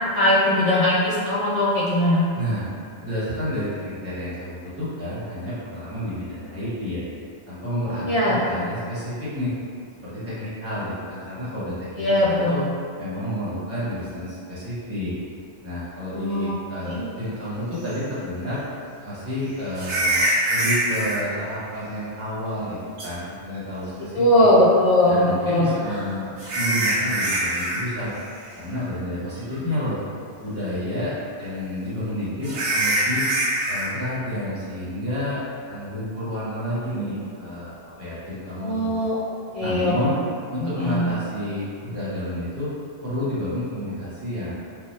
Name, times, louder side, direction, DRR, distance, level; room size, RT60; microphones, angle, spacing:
voice 1, 0.0-2.2 8.1-8.7 12.0-12.6 16.1-16.5 16.9-17.1 24.1-25.7 38.6-39.1 39.5-40.2 40.6-41.0, left 1 dB, 60° left, -8 dB, 0.4 m, -20 dB
voice 2, 3.0-7.0 7.5-9.5 10.0-12.6 13.0-15.1 15.6-18.6 19.0-24.5 25.1-28.1 28.6-30.0 30.4-33.2 33.7-35.4 35.7-37.7 38.0-38.9 39.6-40.2 40.5-42.7 43.0-44.5, left 1 dB, 15° right, -12 dB, 1.0 m, -30 dB
sound 1, 17.9-18.0 19.7-21.2 23.0-23.1 25.6-27.8 28.1-28.4 28.8-28.9 29.5-29.6 32.4-33.9, right 1 dB, 90° right, 1.1 m, -24 dB
3.4 x 2.2 x 2.7 m, 2.3 s
omnidirectional pair, 1.2 m